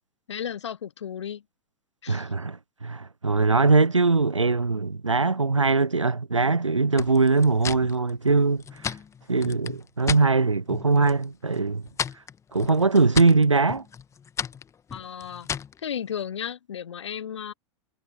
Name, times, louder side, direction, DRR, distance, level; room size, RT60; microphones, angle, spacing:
voice 1, 0.3-1.4 2.0-2.3 14.9-15.5 15.8-17.5, left 8 dB, 70° left, 1.0 m, -34 dB
voice 2, 2.1-8.9 9.3-11.8 12.5-13.8, right 3 dB, 85° right, 0.8 m, -21 dB
sound 1, 7.0-10.3 10.7-11.2 11.5-15.8, left 7 dB, 20° left, 1.4 m, -35 dB
figure-of-eight pair, 90°, 16 cm